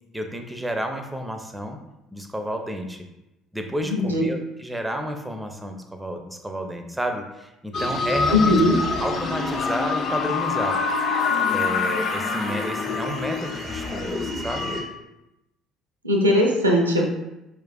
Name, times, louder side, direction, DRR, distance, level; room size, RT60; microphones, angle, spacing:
voice 1, 0.1-1.8 2.1-3.0 3.5-8.6 9.0-10.8 11.5-14.7, equal, 10° right, 5 dB, 0.4 m, -31 dB
voice 2, 3.9-4.2 8.3-8.8 16.0-17.1, left 1 dB, 85° right, 0 dB, 0.4 m, -19 dB
sound 1, 7.7-14.8, left 4 dB, 45° left, 0.6 m, -26 dB
4.5 x 2.4 x 2.3 m, 0.93 s
figure-of-eight pair, 55°, 0 cm